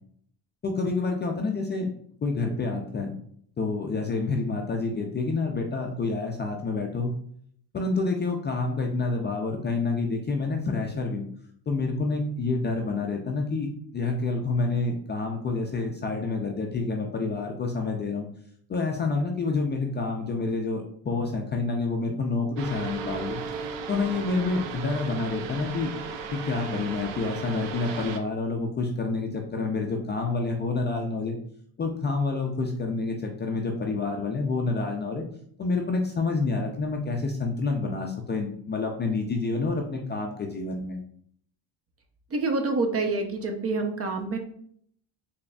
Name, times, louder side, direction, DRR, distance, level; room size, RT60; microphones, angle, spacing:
voice 1, 0.6-1.9 2.2-3.1 3.6-7.1 7.7-11.2 11.7-18.3 18.7-23.4 23.9-25.9 26.3-31.4 31.8-35.2 35.6-41.0, left 3 dB, 25° left, 1 dB, 0.3 m, -28 dB
sound 1, 22.6-28.2, right 5 dB, 80° right, 0.6 m, -35 dB
voice 2, 42.3-44.4, right 3 dB, 35° right, 4 dB, 0.6 m, -27 dB
3.9 x 3.4 x 2.2 m, 0.64 s
cardioid pair, 125°, 43 cm